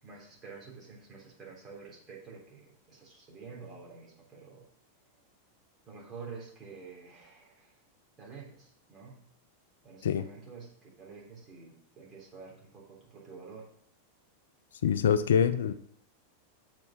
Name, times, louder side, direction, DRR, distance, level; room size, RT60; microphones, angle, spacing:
voice 1, 0.0-4.7 5.9-7.8 8.2-9.2 9.8-13.7, right 5 dB, 25° right, -3 dB, 3.6 m, -48 dB
voice 2, 14.8-15.7, left 8 dB, 65° left, 12 dB, 0.5 m, -25 dB
7.3 x 5.4 x 6.4 m, 0.71 s
figure-of-eight pair, 90°, 0 cm